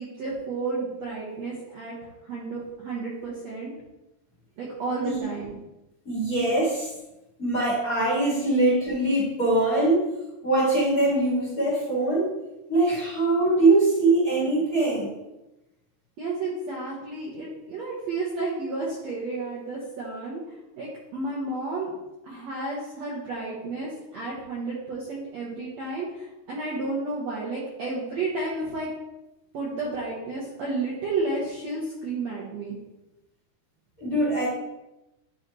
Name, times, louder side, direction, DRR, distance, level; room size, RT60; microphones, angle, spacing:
voice 1, 0.0-2.0 2.2-3.7 4.6-5.6 16.2-20.4 20.7-21.9 22.2-28.9 29.5-32.7, right 3 dB, 90° right, -5 dB, 1.5 m, -32 dB
voice 2, 6.1-6.9 7.4-10.1 10.4-12.3 12.7-15.1 34.0-34.5, right 2 dB, 30° left, -8 dB, 1.8 m, -22 dB
9.7 x 4.1 x 3.1 m, 0.96 s
omnidirectional pair, 4.7 m